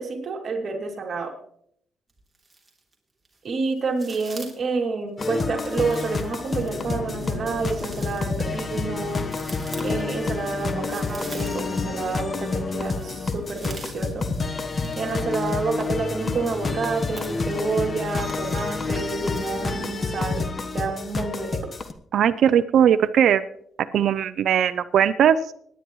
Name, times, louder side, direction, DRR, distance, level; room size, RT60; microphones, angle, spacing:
voice 1, 0.0-1.3 3.4-9.3 9.8-14.3 15.0-20.4 20.7-21.6, right 4 dB, 50° right, 1 dB, 2.6 m, -29 dB
sound 1, 2.1-2.9 3.3-4.7 5.6-11.9 12.2-19.7, right 3 dB, 20° right, 3.0 m, -45 dB
sound 2, 5.2-21.9, left 3 dB, 35° left, 1.1 m, -29 dB
sound 3, 6.5-19.9, left 3 dB, 65° left, 4.7 m, -41 dB
voice 2, 22.1-23.4 23.9-25.5, right 9 dB, 70° right, 11 dB, 0.5 m, -19 dB
25.5 x 10.0 x 3.1 m, 0.68 s
cardioid pair, 90°, 0 cm